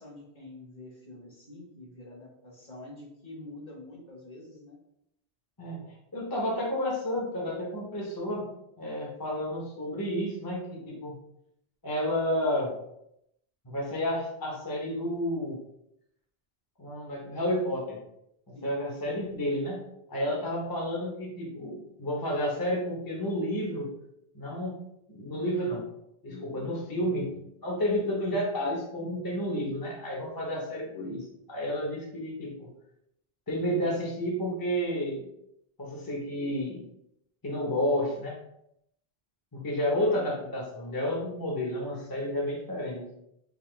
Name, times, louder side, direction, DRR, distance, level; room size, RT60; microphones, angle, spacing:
voice 1, 0.0-4.8 18.5-18.7 31.4-31.5 40.0-40.2 42.8-43.1, left 2 dB, 45° left, -3 dB, 1.3 m, -47 dB
voice 2, 5.6-8.4 8.8-11.1 11.8-12.8 13.6-15.6 16.8-18.0 18.5-19.8 20.1-23.9 24.3-24.8 25.1-25.8 26.2-32.7 33.5-35.2 35.8-36.8 37.4-38.4 39.5-43.0, equal, 25° left, -3 dB, 0.8 m, -31 dB
3.7 x 2.7 x 3.2 m, 0.78 s
omnidirectional pair, 1.1 m